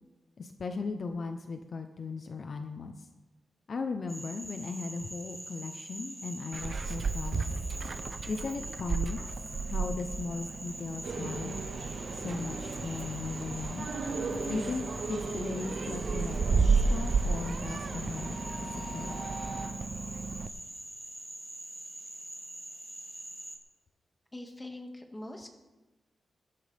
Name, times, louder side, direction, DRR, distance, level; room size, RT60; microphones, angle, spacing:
voice 1, 0.4-3.1 3.7-7.6 8.2-9.2 9.7-11.6 12.1-13.9 14.5-19.2, left 4 dB, 55° left, 6 dB, 0.9 m, -37 dB
Frog, 4.1-23.6, right 1 dB, 10° right, 2.7 m, -44 dB
Meow, 6.5-20.5, right 4 dB, 50° right, 0.7 m, -33 dB
sound 1, 11.0-19.7, right 3 dB, 85° right, 1.9 m, -38 dB
voice 2, 24.3-25.5, left 1 dB, 15° left, 2 dB, 2.1 m, -43 dB
22.0 x 12.5 x 3.6 m, 1.1 s
wide cardioid pair, 115°, 0 cm